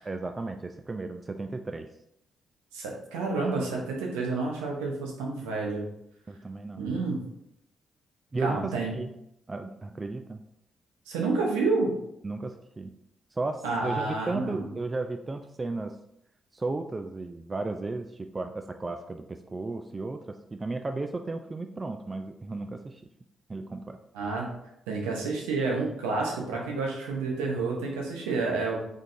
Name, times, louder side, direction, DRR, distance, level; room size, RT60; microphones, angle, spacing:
voice 1, 0.1-1.9 6.3-6.8 8.3-9.1 9.5-10.4 12.2-12.9 13.3-15.9 16.5-23.0 23.5-24.0, right 3 dB, 30° right, 7 dB, 0.3 m, -34 dB
voice 2, 2.7-5.9 6.8-7.2 8.4-8.9 11.1-11.9 13.6-14.7 24.1-24.5 24.9-28.8, right 3 dB, 80° right, -1 dB, 0.7 m, -29 dB
3.7 x 3.4 x 2.5 m, 0.77 s
hypercardioid pair, 40°, 0 cm